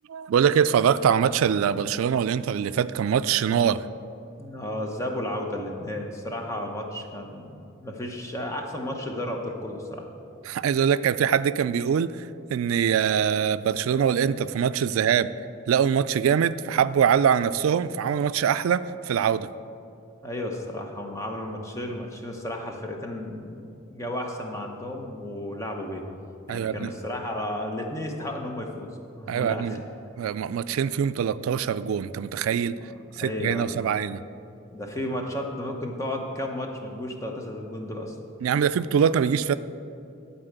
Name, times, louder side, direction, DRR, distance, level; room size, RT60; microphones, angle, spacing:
voice 1, 0.1-3.9 10.5-15.3 15.7-19.5 26.5-26.9 29.3-29.8 30.2-32.7 33.2-34.2 38.4-39.5, right 8 dB, 90° right, 14 dB, 0.3 m, -23 dB
voice 2, 4.4-10.1 20.2-23.6 23.9-26.0 26.5-28.9 29.2-29.8 33.1-33.9 34.7-38.2, left 1 dB, 15° left, 1 dB, 0.9 m, -33 dB
12.5 x 4.2 x 8.0 m, 2.6 s
head